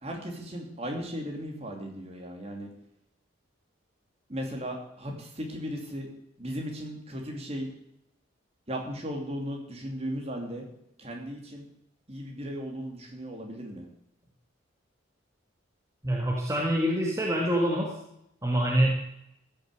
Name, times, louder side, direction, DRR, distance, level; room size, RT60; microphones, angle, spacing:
voice 1, 0.0-2.7 4.3-6.1 6.4-7.7 8.7-10.7 11.0-11.7 12.1-13.9, equal, 30° right, 1 dB, 2.8 m, -36 dB
voice 2, 16.0-17.9 18.4-18.9, right 1 dB, 15° right, -2 dB, 1.8 m, -25 dB
14.5 x 6.8 x 7.6 m, 0.78 s
head